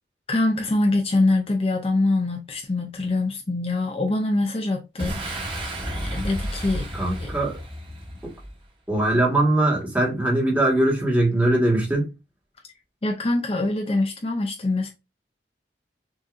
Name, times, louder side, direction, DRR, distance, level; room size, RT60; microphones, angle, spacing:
voice 1, 0.3-5.2 6.1-6.9 7.2-7.3 13.0-14.9, left 2 dB, 35° left, 0.6 m, -24 dB
Boom, 5.0-8.6, equal, 30° right, 1.5 m, -32 dB
voice 2, 6.9-7.5 8.9-12.1, right 1 dB, 10° right, 1.5 m, -21 dB
6.2 x 2.8 x 2.5 m
head